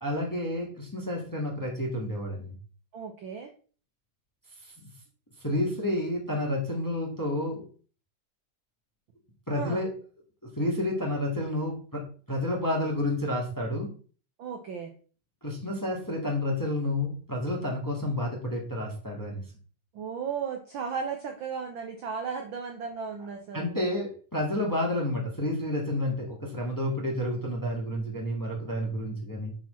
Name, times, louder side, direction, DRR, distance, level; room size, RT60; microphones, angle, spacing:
voice 1, 0.0-2.5 4.8-4.9 5.4-7.6 9.5-9.9 10.6-13.9 15.4-19.4 23.5-29.5, left 1 dB, 10° left, -1 dB, 1.3 m, -30 dB
voice 2, 2.9-3.5 9.5-9.8 14.4-14.9 19.9-23.8, right 6 dB, 75° right, 4 dB, 1.1 m, -35 dB
6.0 x 6.0 x 4.3 m, 0.39 s
omnidirectional pair, 3.4 m